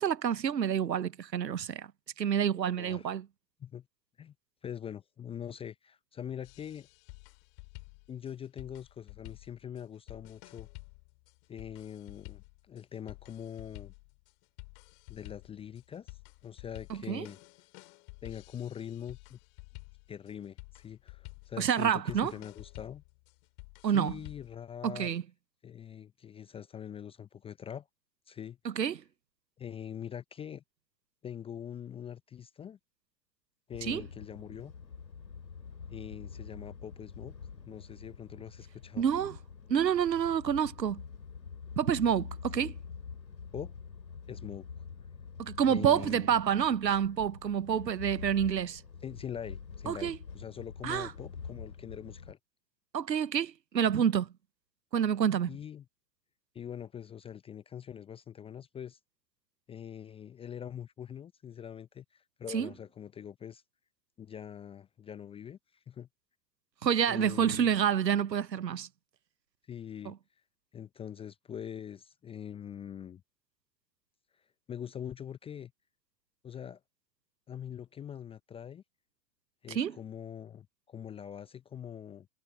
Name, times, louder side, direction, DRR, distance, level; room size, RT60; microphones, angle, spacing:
voice 1, 0.0-1.9 2.2-3.2 16.9-17.3 21.6-22.3 23.8-24.1 24.8-25.2 28.6-29.0 33.8-34.0 39.0-39.4 39.7-41.0 41.8-42.7 45.4-48.8 49.9-50.2 50.8-51.1 52.9-54.3 54.9-55.5 62.5-62.7 66.8-68.9 70.1-70.2 79.7-79.9, right 8 dB, 80° right, 1.0 m, -28 dB
voice 2, 2.8-3.1 3.6-3.9 4.2-4.3 4.6-6.9 8.1-10.7 11.5-13.9 15.1-16.2 16.4-17.4 18.2-19.4 20.1-23.0 23.8-25.1 25.6-27.9 28.3-28.6 29.6-30.6 31.2-32.8 33.7-34.7 35.9-37.3 37.7-39.0 42.5-42.7 43.5-43.7 44.3-44.8 45.7-46.4 49.0-52.4 55.5-55.8 56.5-59.0 59.7-63.6 64.2-65.6 65.9-66.1 67.1-67.8 69.7-70.1 70.7-73.2 74.7-75.7 76.4-76.8 77.5-78.8 79.6-82.3, left 9 dB, 10° left, 0.6 m, -43 dB
sound 1, 6.4-24.6, left 38 dB, 45° left, 4.1 m, -51 dB
sound 2, 33.7-52.3, left 5 dB, 80° left, 3.4 m, -46 dB
figure-of-eight pair, 100°, 50 cm